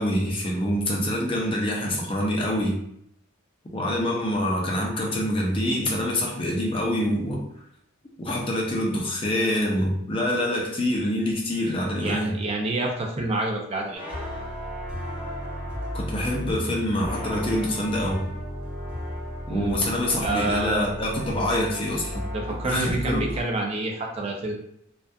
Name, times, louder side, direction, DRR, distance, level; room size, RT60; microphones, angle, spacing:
voice 1, 0.0-2.8 3.7-7.4 8.2-12.4 15.9-18.3 19.5-22.3 22.6-23.4, left 1 dB, 25° left, -1 dB, 0.5 m, -26 dB
voice 2, 12.0-14.0 19.5-19.8 20.2-20.9 22.3-24.5, right 2 dB, 30° right, 1 dB, 0.4 m, -28 dB
sound 1, 13.9-23.4, left 1 dB, 5° right, 1.0 m, -34 dB
2.6 x 2.2 x 2.2 m, 0.71 s
head